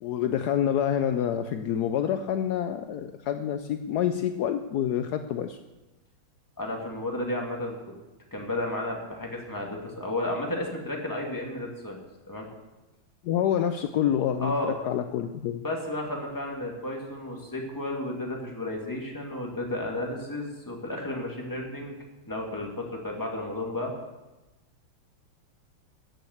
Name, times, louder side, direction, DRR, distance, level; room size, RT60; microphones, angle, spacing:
voice 1, 0.0-5.6 13.2-14.5 14.8-15.6, left 9 dB, 80° left, 8 dB, 0.9 m, -27 dB
voice 2, 6.6-7.8 8.3-12.0 12.3-12.5 14.4-14.7 15.6-22.0 22.3-23.9, left 1 dB, 10° left, -1 dB, 2.0 m, -32 dB
13.5 x 6.5 x 7.9 m, 1.1 s
omnidirectional pair, 2.3 m